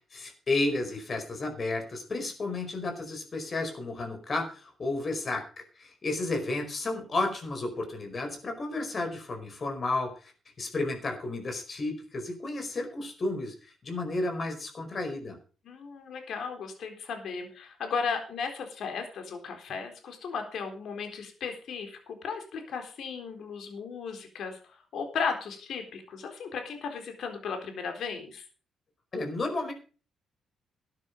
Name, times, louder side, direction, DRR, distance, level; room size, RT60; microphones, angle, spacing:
voice 1, 0.1-10.3 10.6-15.4 29.1-29.7, left 2 dB, 40° left, 5 dB, 4.8 m, -32 dB
voice 2, 15.6-24.6 24.9-28.4, left 5 dB, 65° left, 5 dB, 3.9 m, -35 dB
13.5 x 9.8 x 5.3 m, 0.37 s
cardioid pair, 90°, 0 cm